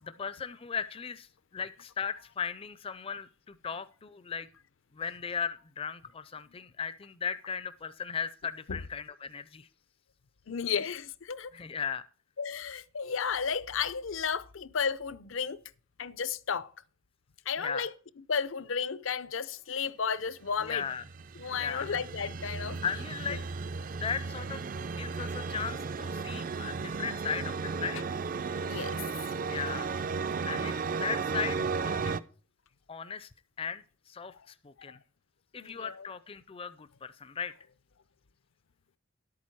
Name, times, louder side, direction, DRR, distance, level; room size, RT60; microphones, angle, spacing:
voice 1, 0.0-4.5 4.9-9.7 11.5-12.0 17.6-17.9 20.6-21.0 21.5-22.0 22.8-23.4 23.9-28.0 29.5-29.9 30.5-32.1 32.9-33.3 33.6-35.0 35.5-37.5, left 6 dB, 30° left, 0.4 m, -37 dB
voice 2, 10.5-11.5 12.4-15.6 16.0-16.7 17.5-17.9 18.3-20.9 21.4-22.8 23.3-23.4 28.7-29.0 34.9-35.0 35.5-36.1, left 6 dB, 75° left, 0.6 m, -33 dB
sound 1, 20.6-32.2, right 4 dB, 40° right, 0.4 m, -34 dB
11.5 x 8.6 x 4.6 m
head